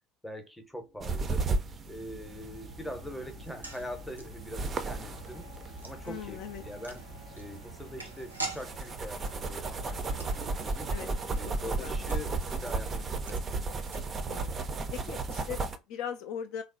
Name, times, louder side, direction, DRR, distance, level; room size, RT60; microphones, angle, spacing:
voice 1, 0.2-1.5 1.9-5.5 5.8-7.1 7.3-10.9 11.4-13.4, left 1 dB, 5° left, 0.7 m, -43 dB
sound 1, 0.6-13.8, left 3 dB, 80° left, 0.8 m, -52 dB
sound 2, 1.0-15.8, right 3 dB, 30° right, 0.4 m, -35 dB
sound 3, 3.4-14.6 14.8-14.9 15.2-15.4, right 3 dB, 85° right, 0.5 m, -46 dB
voice 2, 6.0-6.6 10.9-11.1 11.8-11.9 14.3-14.5 14.9-16.6, left 8 dB, 55° left, 0.3 m, -39 dB
3.1 x 2.0 x 2.5 m
figure-of-eight pair, 65°, 0 cm